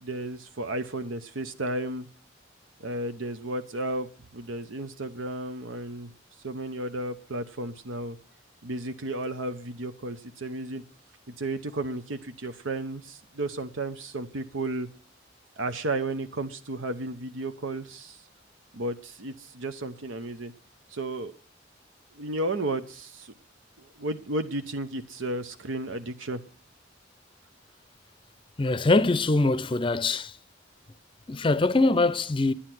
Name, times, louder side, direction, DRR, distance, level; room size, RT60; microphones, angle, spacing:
voice 1, 0.0-2.1 2.8-6.1 6.4-8.2 8.6-10.8 11.4-14.9 15.6-18.2 18.7-20.5 20.9-21.3 22.2-23.3 23.8-26.4, right 2 dB, 90° right, 0.9 m, -33 dB
voice 2, 28.6-30.4 31.3-32.5, left 2 dB, 25° left, 0.5 m, -23 dB
10.0 x 9.8 x 6.0 m
head